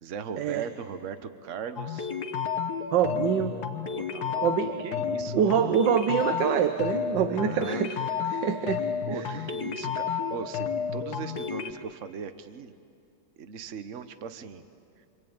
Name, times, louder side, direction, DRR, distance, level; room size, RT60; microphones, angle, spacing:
voice 1, 0.0-2.1 3.9-4.5 4.8-5.6 7.4-7.8 9.1-12.8 13.4-14.7 15.0-15.1, right 6 dB, 45° right, 10 dB, 1.2 m, -39 dB
sound 1, 1.8-11.7, left 6 dB, 55° left, 1.6 m, -31 dB
voice 2, 2.9-3.6 4.4-4.7 5.3-7.9 8.3-8.8 9.1-9.3, right 8 dB, 65° right, 8 dB, 1.5 m, -25 dB
26.5 x 25.5 x 8.9 m, 2.4 s
omnidirectional pair, 2.2 m